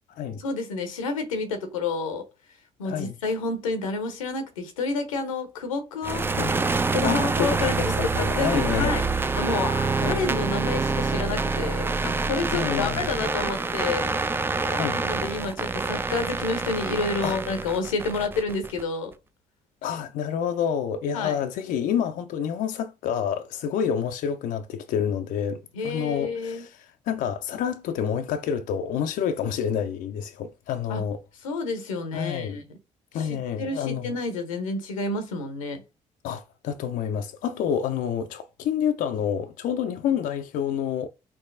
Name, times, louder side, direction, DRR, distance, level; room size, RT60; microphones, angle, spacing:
voice 1, 0.4-2.3 2.8-6.3 6.9-9.0 9.4-14.1 14.9-19.1 21.1-21.4 25.7-26.7 30.9-31.0 31.4-32.6 33.1-35.8, left 3 dB, 80° left, 0.7 m, -29 dB
sound 1, 6.0-18.8, right 3 dB, 15° right, 0.3 m, -26 dB
voice 2, 7.0-8.9 10.0-10.3 12.5-13.0 14.6-15.0 17.2-17.4 19.8-31.2 32.1-32.6 33.1-34.2 36.2-41.1, left 8 dB, 55° left, 0.4 m, -28 dB
4.6 x 2.8 x 2.5 m
figure-of-eight pair, 45°, 17 cm